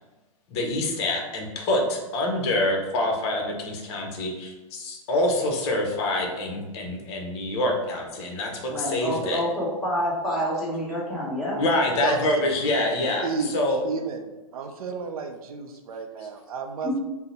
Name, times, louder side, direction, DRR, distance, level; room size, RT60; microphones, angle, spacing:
voice 1, 0.5-9.4 11.6-13.8, left 1 dB, 45° left, 1 dB, 0.7 m, -26 dB
voice 2, 8.7-11.6 16.8-17.0, equal, ahead, -8 dB, 1.0 m, -27 dB
voice 3, 13.2-13.6 13.8-17.0, right 5 dB, 75° right, 5 dB, 0.5 m, -32 dB
2.7 x 2.0 x 4.0 m, 1.2 s
hypercardioid pair, 130°, 19 cm